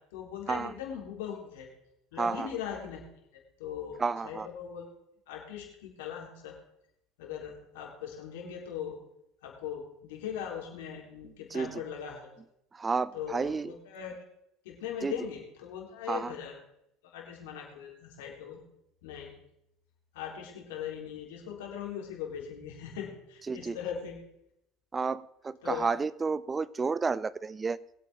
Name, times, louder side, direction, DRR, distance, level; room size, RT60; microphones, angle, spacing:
voice 1, 0.1-1.7 2.1-3.0 3.6-4.9 5.3-6.6 7.2-9.0 9.4-12.3 13.1-14.1 14.6-16.5 17.1-18.6 19.0-19.3 20.1-24.2 25.6-25.9, left 8 dB, 75° left, -1 dB, 4.0 m, -40 dB
voice 2, 2.2-2.5 4.0-4.5 11.5-11.8 12.7-13.7 15.0-15.2 16.1-16.3 23.5-23.8 24.9-27.8, right 4 dB, 25° right, 20 dB, 0.6 m, -31 dB
22.5 x 8.4 x 3.8 m, 0.79 s
hypercardioid pair, 75°, 0 cm